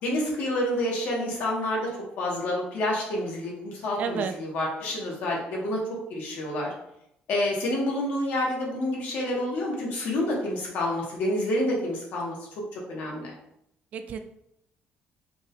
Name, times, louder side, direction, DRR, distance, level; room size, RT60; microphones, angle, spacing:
voice 1, 0.0-1.9 2.2-6.7 7.3-12.4 12.9-13.3, left 1 dB, 65° left, -2 dB, 1.5 m, -28 dB
voice 2, 4.0-4.4 13.9-14.2, right 6 dB, 45° right, 7 dB, 0.4 m, -30 dB
5.1 x 2.7 x 3.6 m, 0.78 s
cardioid pair, 175°, 3 cm